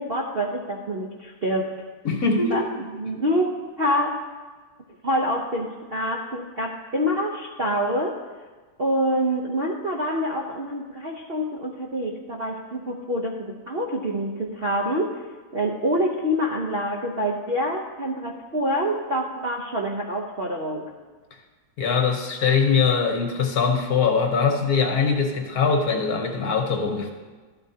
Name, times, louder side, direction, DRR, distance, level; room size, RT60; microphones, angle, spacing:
voice 1, 0.0-1.7 2.5-4.1 5.0-8.2 8.8-15.2 15.5-20.9, equal, 50° right, -1 dB, 0.7 m, -26 dB
voice 2, 2.0-2.6 21.8-27.1, left 5 dB, 55° left, 3 dB, 1.3 m, -22 dB
13.5 x 12.0 x 2.8 m, 1.3 s
omnidirectional pair, 2.1 m